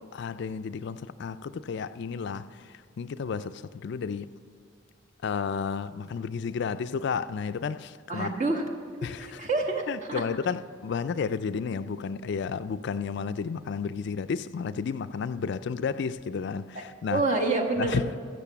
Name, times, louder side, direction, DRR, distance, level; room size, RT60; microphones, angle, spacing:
voice 1, 0.0-4.3 5.2-8.3 9.0-9.5 9.9-17.2 17.8-18.2, left 6 dB, 60° left, 0.4 m, -32 dB
voice 2, 8.1-8.6 9.0-10.2 16.7-16.8 17.1-18.0, right 3 dB, 40° right, 1.4 m, -28 dB
15.0 x 6.6 x 5.9 m
head